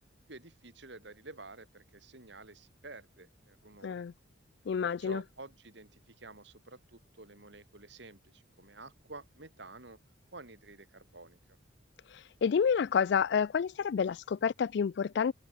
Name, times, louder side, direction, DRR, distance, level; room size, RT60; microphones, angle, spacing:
voice 1, 0.3-4.0 4.8-10.0 10.3-11.6, right 3 dB, 60° right, 2.8 m, -50 dB
voice 2, 3.8-4.1 4.7-5.2 12.4-15.3, left 6 dB, 55° left, 0.3 m, -29 dB
open air
head